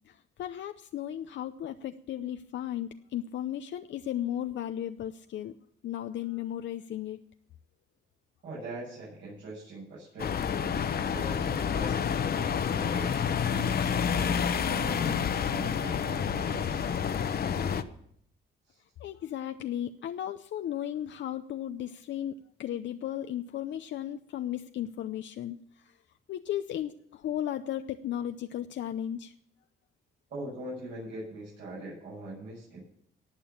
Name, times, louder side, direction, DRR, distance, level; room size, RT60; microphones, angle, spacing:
voice 1, 0.4-5.5 5.8-7.2 19.0-25.6 26.3-29.3, left 11 dB, 65° left, 7 dB, 0.6 m, -35 dB
voice 2, 8.4-10.5 11.0-17.0 18.7-18.8 30.3-32.8, right 1 dB, 65° right, -7 dB, 7.7 m, -42 dB
sound 1, 10.2-17.8, left 7 dB, 50° left, 1.0 m, -29 dB
18.5 x 6.8 x 7.3 m, 0.67 s
cardioid pair, 90°, 20 cm